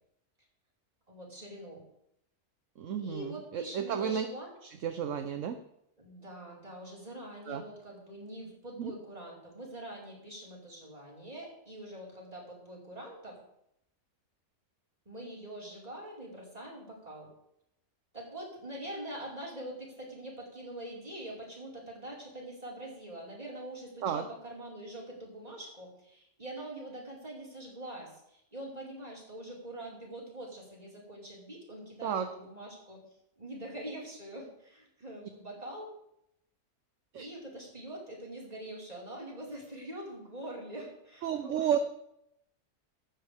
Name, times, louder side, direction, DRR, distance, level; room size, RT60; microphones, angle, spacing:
voice 1, 1.1-1.8 3.0-4.5 6.0-13.4 15.0-17.3 18.1-33.0 33.4-35.9 37.2-41.7, right 1 dB, 25° right, -4 dB, 5.2 m, -44 dB
voice 2, 2.8-4.3 4.6-5.6 7.5-7.6 8.8-8.9 24.0-24.2 32.0-32.3 37.1-37.3 41.2-41.8, right 8 dB, 60° right, 8 dB, 1.1 m, -32 dB
16.0 x 12.5 x 3.6 m, 0.78 s
omnidirectional pair, 1.6 m